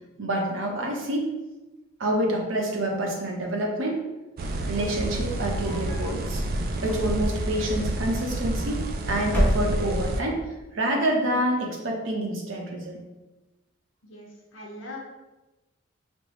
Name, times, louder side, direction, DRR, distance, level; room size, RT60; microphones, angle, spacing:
voice 1, 0.2-1.3 2.0-4.0 4.7-6.4 6.8-8.8 9.1-10.4 10.7-13.0, right 1 dB, 85° right, 0 dB, 0.7 m, -27 dB
sound 1, 4.4-10.2, right 1 dB, 50° right, 0.3 m, -29 dB
sound 2, 5.2-6.3 6.8-7.4 8.4-8.9 9.2-10.2, equal, 10° left, 0.5 m, -29 dB
voice 2, 14.0-15.0, left 2 dB, 80° left, -2 dB, 0.7 m, -41 dB
5.2 x 2.0 x 3.0 m, 1.1 s
head